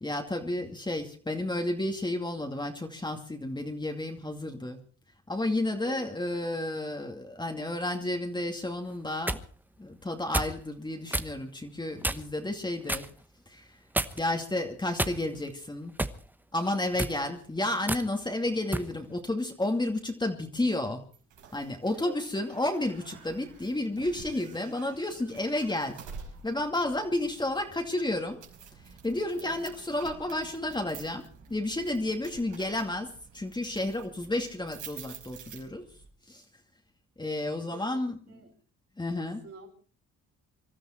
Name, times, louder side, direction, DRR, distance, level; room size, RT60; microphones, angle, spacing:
voice 1, 0.0-4.8 5.3-9.4 9.8-13.1 13.5-13.8 14.2-15.9 16.5-21.0 21.5-26.0 26.4-28.4 29.0-31.2 31.5-35.9 36.3-36.4 37.2-38.2 39.0-39.4, left 1 dB, 15° left, 3 dB, 2.5 m, -31 dB
sound 1, 8.9-9.4 10.3-10.6 11.1-11.3 12.0-12.4 12.9-13.1 13.9-14.4 15.0-15.5 16.0-16.2 16.9-17.2 17.9-18.1 18.7-18.9, right 1 dB, 5° right, 1.1 m, -30 dB
sound 2, 21.1-36.1, right 6 dB, 85° right, 5.2 m, -49 dB
voice 2, 21.9-22.2 29.3-29.7 32.3-32.4 37.6-38.5 39.4-39.7, right 5 dB, 50° right, 1 dB, 5.4 m, -47 dB
25.0 x 13.0 x 4.5 m, 0.42 s
cardioid pair, 90°, 30 cm